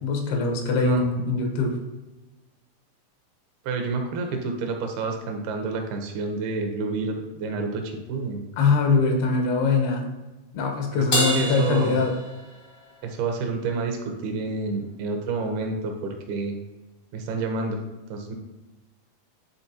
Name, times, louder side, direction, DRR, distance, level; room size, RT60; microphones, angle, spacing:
voice 1, 0.0-1.8 8.6-10.1 10.5-12.1, left 4 dB, 85° left, 2 dB, 3.0 m, -22 dB
voice 2, 3.6-8.4 10.9-12.0 13.0-16.6 17.1-17.8 18.1-18.3, right 4 dB, 80° right, 4 dB, 2.8 m, -29 dB
Crash cymbal, 11.1-12.8, equal, 60° left, 0.6 m, -27 dB
10.5 x 4.0 x 2.8 m, 1.1 s
omnidirectional pair, 4.4 m